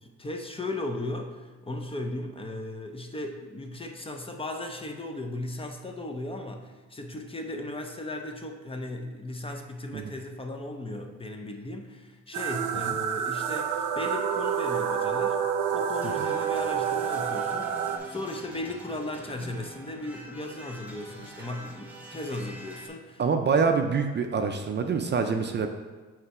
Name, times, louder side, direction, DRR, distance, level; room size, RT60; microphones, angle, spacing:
voice 1, 0.0-15.4 15.7-23.2, left 1 dB, 20° left, 4 dB, 0.6 m, -36 dB
sound 1, 12.3-18.0, right 8 dB, 90° right, 0.6 m, -28 dB
sound 2, 16.0-22.9, right 1 dB, 5° right, 1.0 m, -46 dB
voice 2, 23.2-25.7, right 5 dB, 35° right, 6 dB, 0.4 m, -25 dB
6.5 x 3.3 x 4.8 m, 1.3 s
cardioid pair, 90°, 30 cm